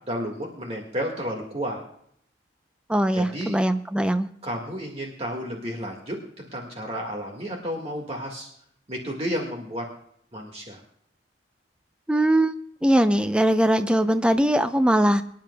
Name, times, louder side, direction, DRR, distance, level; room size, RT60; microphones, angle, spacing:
voice 1, 0.1-1.8 3.1-3.6 4.4-8.5 8.9-9.8 10.3-10.8, equal, 35° right, 1 dB, 1.7 m, -32 dB
voice 2, 2.9-4.3 12.1-12.5 12.8-15.2, right 1 dB, 5° right, 10 dB, 0.5 m, -21 dB
24.0 x 10.5 x 2.3 m, 0.68 s
head